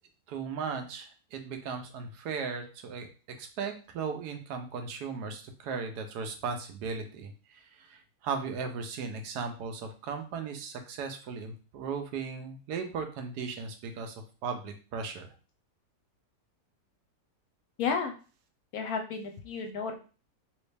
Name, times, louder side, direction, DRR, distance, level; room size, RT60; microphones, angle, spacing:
voice 1, 0.3-3.1 3.4-15.3, right 5 dB, 75° right, 5 dB, 1.2 m, -37 dB
voice 2, 17.8-18.1 18.7-19.9, left 5 dB, 70° left, 4 dB, 1.0 m, -32 dB
3.1 x 3.1 x 3.3 m, 0.36 s
omnidirectional pair, 1.7 m